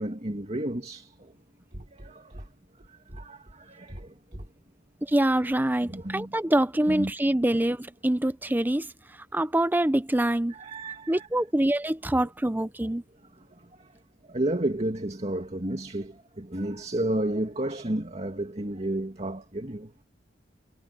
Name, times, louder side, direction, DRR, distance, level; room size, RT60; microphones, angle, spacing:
voice 1, 0.0-1.3 1.7-2.4 3.1-4.4 5.8-6.3 6.9-7.1 10.2-11.3 14.3-19.9, right 1 dB, 35° right, 2.3 m, -32 dB
voice 2, 5.0-8.9 9.3-10.5 11.1-13.0, right 1 dB, 10° right, 0.6 m, -25 dB
head